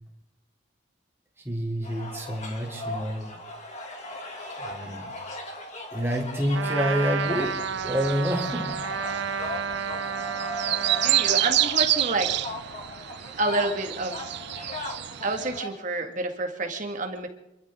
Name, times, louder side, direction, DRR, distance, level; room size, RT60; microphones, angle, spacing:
voice 1, 1.4-3.3 4.6-5.1 5.9-7.6 7.8-8.8, equal, 15° right, -2 dB, 3.5 m, -28 dB
sound 1, 1.8-15.7, left 1 dB, 40° left, 2.7 m, -38 dB
Trumpet, 6.5-11.5, right 6 dB, 80° right, 1.0 m, -31 dB
sound 2, 7.2-15.6, right 14 dB, 60° right, 0.5 m, -29 dB
voice 2, 11.0-12.4 13.4-14.2 15.2-17.3, right 2 dB, 40° right, 4 dB, 2.1 m, -28 dB
28.0 x 12.5 x 3.9 m, 0.92 s
head